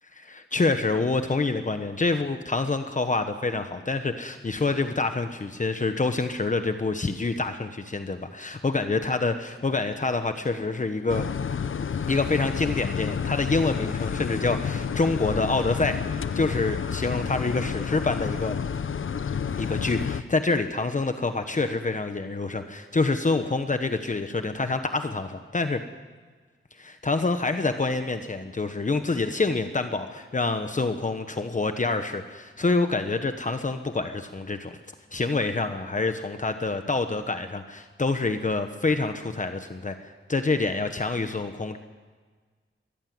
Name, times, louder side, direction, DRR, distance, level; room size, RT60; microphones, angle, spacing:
voice 1, 0.1-11.3 12.1-18.6 19.5-25.8 26.8-34.8 35.1-41.8, left 3 dB, 35° left, 7 dB, 1.2 m, -27 dB
sound 1, 11.1-20.2, left 7 dB, 70° left, 0.8 m, -30 dB
22.5 x 15.5 x 9.5 m, 1.5 s
wide cardioid pair, 115°, 21 cm